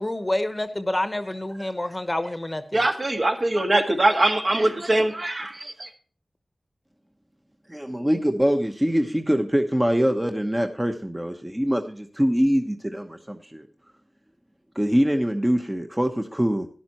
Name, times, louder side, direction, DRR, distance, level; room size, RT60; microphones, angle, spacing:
voice 1, 0.0-2.9, left 1 dB, 25° left, 10 dB, 1.0 m, -28 dB
voice 2, 2.7-5.5, right 1 dB, 50° right, 3 dB, 1.9 m, -22 dB
voice 3, 7.7-13.7 14.7-16.7, equal, 15° right, 4 dB, 1.0 m, -23 dB
13.0 x 11.0 x 3.0 m, 0.42 s
wide cardioid pair, 70°, 0 cm